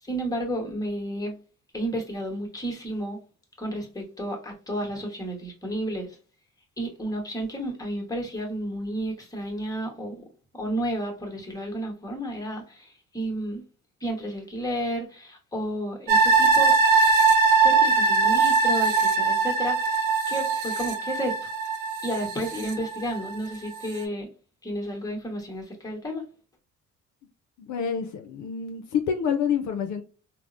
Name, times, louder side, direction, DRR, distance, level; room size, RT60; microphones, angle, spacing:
voice 1, 0.0-1.3 1.7-3.2 3.6-6.2 6.8-10.2 10.5-13.6 14.0-16.7 17.6-21.4 22.0-24.3 24.6-26.2, equal, 10° left, 1.1 m, -32 dB
sound 1, 16.1-23.4 23.8-23.9, right 4 dB, 90° right, 0.6 m, -21 dB
voice 2, 27.6-30.0, left 7 dB, 75° left, 0.5 m, -27 dB
3.4 x 2.0 x 2.5 m
cardioid pair, 90°, 30 cm